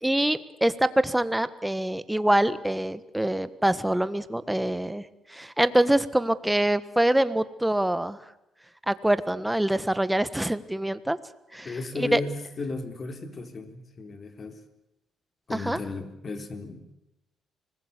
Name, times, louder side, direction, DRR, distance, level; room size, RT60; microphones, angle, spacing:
voice 1, 0.0-8.2 8.9-11.2 11.5-12.2 15.5-15.8, right 1 dB, 5° right, 14 dB, 1.4 m, -25 dB
voice 2, 11.6-14.6 15.5-16.9, left 3 dB, 40° left, 7 dB, 3.7 m, -35 dB
25.5 x 20.0 x 8.3 m, 0.89 s
cardioid pair, 90°, 0 cm